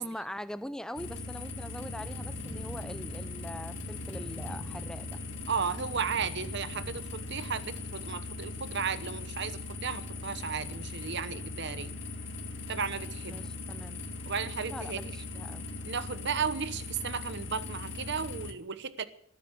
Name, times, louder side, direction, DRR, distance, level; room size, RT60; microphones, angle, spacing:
voice 1, 0.0-5.2 13.3-14.0 14.6-15.7, equal, 5° left, 13 dB, 0.6 m, -42 dB
sound 1, 1.0-18.5, left 3 dB, 55° left, 1.9 m, -40 dB
sound 2, 1.8-8.4, equal, 20° left, 4.1 m, -46 dB
voice 2, 5.5-11.9 12.7-13.4 14.3-15.0 15.8-19.0, right 6 dB, 55° right, 13 dB, 1.0 m, -34 dB
18.5 x 9.4 x 8.1 m, 0.67 s
head